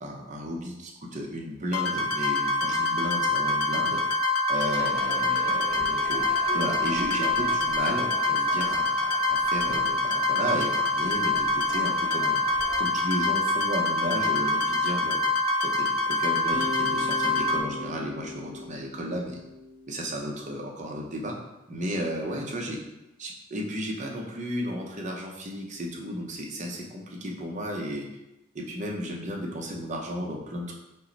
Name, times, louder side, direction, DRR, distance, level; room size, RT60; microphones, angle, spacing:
voice 1, 0.0-4.0 4.5-12.4 12.8-15.3 15.6-19.4 19.9-21.4 21.7-22.8 23.2-28.1 28.5-30.7, equal, 35° right, -1 dB, 0.7 m, -34 dB
sound 1, 1.7-17.6, left 2 dB, 90° left, 0.6 m, -25 dB
Crowd / Fireworks, 4.6-12.8, left 3 dB, 45° left, 0.4 m, -43 dB
Bass guitar, 16.5-20.6, left 4 dB, 5° left, 1.0 m, -39 dB
5.4 x 2.1 x 3.9 m, 0.95 s
head